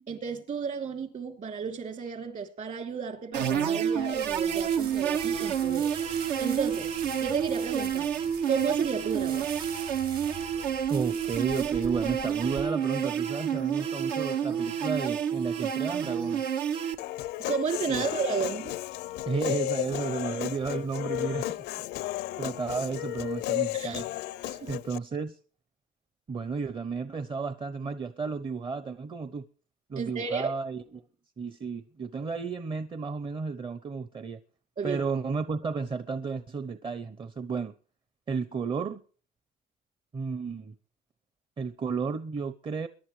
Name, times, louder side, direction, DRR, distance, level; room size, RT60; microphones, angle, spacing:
voice 1, 0.1-5.9 6.4-6.9 7.2-8.1 8.5-9.5 17.4-18.7 23.7-24.0 24.4-24.7 29.9-30.5 34.8-35.0, right 6 dB, 50° right, 2.9 m, -32 dB
sound 1, 3.3-17.0, right 8 dB, 85° right, 1.4 m, -29 dB
sound 2, 4.1-12.6, right 7 dB, 65° right, 4.5 m, -43 dB
voice 2, 10.9-16.4 17.9-18.0 19.3-21.6 22.4-24.1 24.7-25.4 26.3-29.4 29.9-31.0 31.4-34.4 34.8-37.7 38.3-39.0 40.1-40.7 41.6-42.9, right 5 dB, 30° right, 0.8 m, -33 dB
Human voice, 17.0-25.0, left 16 dB, 80° left, 0.5 m, -33 dB
22.5 x 11.0 x 3.2 m
cardioid pair, 110°, 17 cm